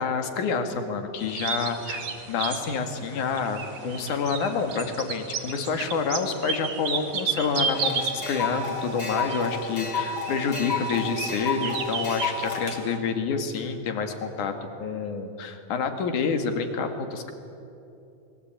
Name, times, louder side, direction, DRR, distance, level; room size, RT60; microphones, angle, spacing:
voice 1, 0.0-14.5 14.8-17.3, left 5 dB, 60° left, 6 dB, 3.2 m, -28 dB
sound 1, 1.2-13.0, right 5 dB, 55° right, 3.3 m, -34 dB
sound 2, 7.7-12.8, left 4 dB, 35° left, 3.0 m, -31 dB
26.5 x 21.5 x 9.0 m, 2.8 s
omnidirectional pair, 4.3 m